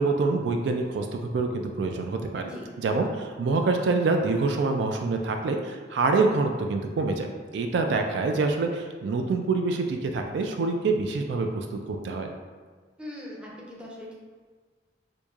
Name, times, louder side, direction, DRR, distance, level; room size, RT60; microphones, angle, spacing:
voice 1, 0.0-2.4 2.8-7.3 7.5-12.3, right 3 dB, 70° right, 4 dB, 0.3 m, -26 dB
voice 2, 2.4-2.7 13.0-14.1, left 1 dB, 5° right, -4 dB, 0.6 m, -41 dB
4.5 x 2.6 x 2.4 m, 1.5 s
head